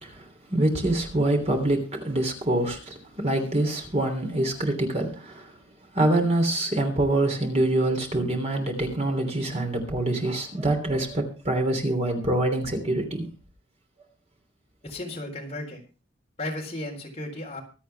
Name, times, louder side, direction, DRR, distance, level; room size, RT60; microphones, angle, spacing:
voice 1, 0.0-5.5 5.9-13.3, right 1 dB, 35° right, 3.1 m, -25 dB
voice 2, 14.8-15.8 16.4-17.6, left 1 dB, 35° left, 4.0 m, -34 dB
24.5 x 8.3 x 3.4 m
head